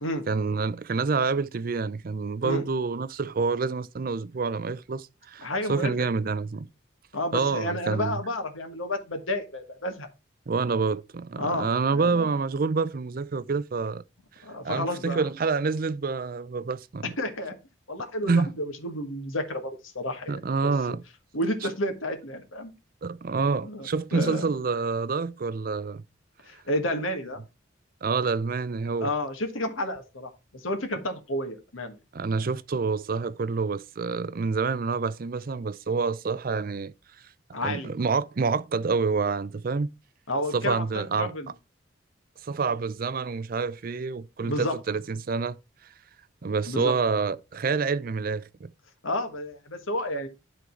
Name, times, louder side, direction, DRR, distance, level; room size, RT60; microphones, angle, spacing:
voice 1, 0.3-6.7 7.3-8.2 10.5-14.0 14.4-17.1 18.2-18.5 20.3-21.0 23.0-26.0 28.0-29.1 32.1-36.9 37.6-39.9 40.5-41.3 42.4-45.6 46.4-48.7, right 4 dB, 45° right, 0.4 m, -27 dB
voice 2, 5.4-6.1 7.1-10.1 11.4-12.3 14.4-15.3 17.2-17.6 17.9-20.3 20.6-20.7 21.3-22.7 23.6-24.5 26.5-27.4 29.0-32.0 37.5-37.9 40.3-41.5 44.4-44.7 46.7-46.9 49.0-50.3, left 1 dB, 90° left, 1.5 m, -31 dB
11.0 x 3.9 x 4.4 m
head